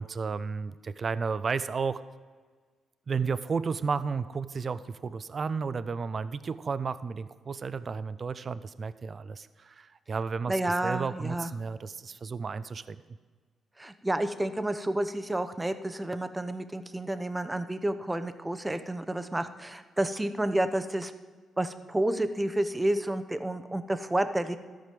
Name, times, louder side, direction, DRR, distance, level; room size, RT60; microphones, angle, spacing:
voice 1, 0.0-2.0 3.1-13.0, right 5 dB, 45° right, 14 dB, 0.4 m, -33 dB
voice 2, 10.5-11.5 13.8-21.1 21.6-24.6, right 1 dB, 15° right, 10 dB, 0.8 m, -30 dB
13.0 x 5.1 x 7.6 m, 1.5 s
cardioid pair, 75°, 0 cm